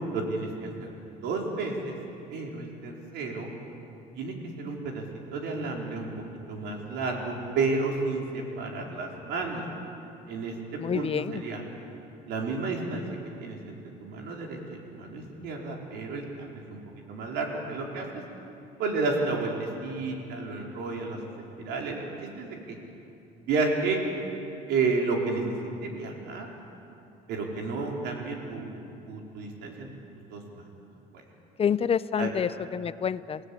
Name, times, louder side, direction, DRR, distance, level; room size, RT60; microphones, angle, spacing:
voice 1, 0.1-0.9 1.2-1.9 2.3-3.5 4.1-5.0 5.3-6.1 6.5-9.6 10.3-11.6 12.3-13.0 13.4-13.7 14.0-14.6 14.9-16.8 17.1-18.2 18.8-21.2 21.6-22.0 22.4-22.8 23.4-24.0 24.7-25.4 25.8-26.5 27.3-28.8 29.0-29.9 30.3-30.6 31.1-31.2 32.2-32.3, right 3 dB, 85° right, 0 dB, 4.7 m, -31 dB
voice 2, 10.8-11.4 31.6-33.4, left 7 dB, 35° left, 16 dB, 0.7 m, -28 dB
29.5 x 17.5 x 8.7 m, 2.8 s
cardioid pair, 110°, 17 cm